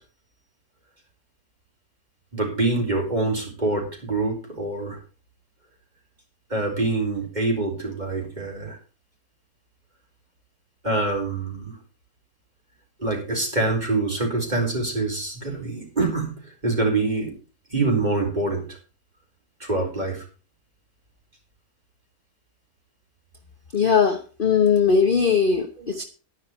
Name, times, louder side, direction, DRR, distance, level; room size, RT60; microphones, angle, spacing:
voice 1, 2.3-5.0 6.5-8.8 10.8-11.8 13.0-17.3 17.7-18.6 19.6-20.2 25.4-25.9, right 2 dB, 25° right, 0 dB, 4.3 m, -25 dB
voice 2, 23.7-26.0, left 6 dB, 40° left, 6 dB, 1.0 m, -20 dB
11.5 x 10.5 x 4.5 m, 0.36 s
omnidirectional pair, 1.6 m